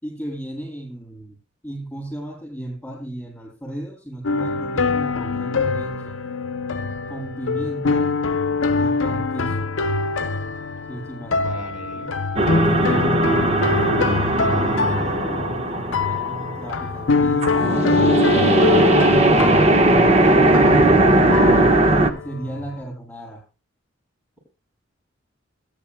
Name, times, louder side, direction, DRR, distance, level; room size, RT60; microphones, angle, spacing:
voice 1, 0.0-1.4 1.6-6.2 7.1-8.1 8.8-9.7 10.9-11.4 12.6-19.7 20.2-21.5 22.2-23.4, right 1 dB, 10° left, -9 dB, 7.1 m, -35 dB
sound 1, 4.2-22.8, left 4 dB, 80° left, 0.7 m, -24 dB
voice 2, 11.3-12.2, equal, 10° right, -1 dB, 7.1 m, -39 dB
sound 2, 12.4-17.2 17.4-22.1, right 2 dB, 35° right, 1.1 m, -18 dB
21.5 x 10.5 x 2.2 m, 0.32 s
head